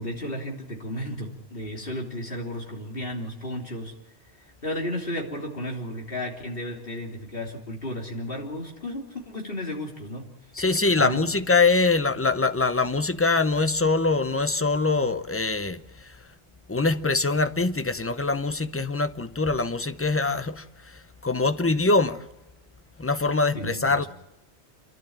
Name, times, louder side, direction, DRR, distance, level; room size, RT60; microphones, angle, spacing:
voice 1, 0.0-3.9 4.6-10.3 10.6-10.7 11.0-11.3 23.5-24.1, left 1 dB, 55° left, 3.6 m, -33 dB
voice 2, 10.5-15.8 16.7-20.6 21.2-22.2 23.0-24.0, left 3 dB, 15° left, 0.6 m, -23 dB
28.5 x 12.0 x 8.7 m
omnidirectional pair, 1.2 m